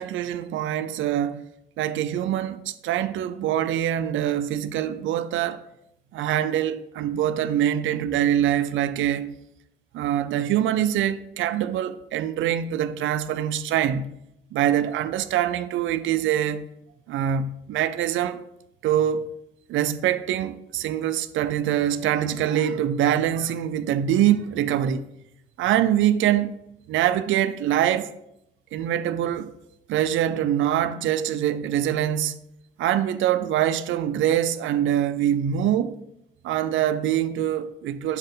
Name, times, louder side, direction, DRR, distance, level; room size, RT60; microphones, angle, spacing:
voice 1, 0.0-1.4 1.8-5.6 6.1-9.3 9.9-14.1 14.5-16.7 17.1-18.4 18.8-19.3 19.7-25.0 25.6-26.6 26.9-28.1 28.7-29.5 29.9-32.4 32.8-36.0 36.4-38.2, right 10 dB, 75° right, 0.5 m, -24 dB
6.9 x 4.2 x 3.9 m
cardioid pair, 90°, 20 cm